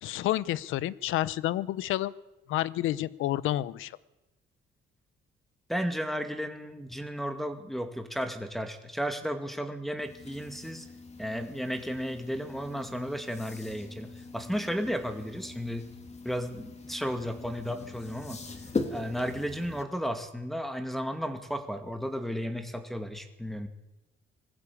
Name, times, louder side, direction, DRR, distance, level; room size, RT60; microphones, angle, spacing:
voice 1, 0.0-2.1 2.5-3.9, left 14 dB, 85° left, 19 dB, 0.7 m, -29 dB
voice 2, 5.7-10.9 11.2-15.9 16.2-18.4 18.9-23.7, equal, ahead, 5 dB, 2.2 m, -34 dB
sound 1, 10.0-19.8, left 3 dB, 35° left, 2.9 m, -41 dB
20.5 x 15.0 x 8.5 m, 1.0 s
cardioid pair, 90°, 20 cm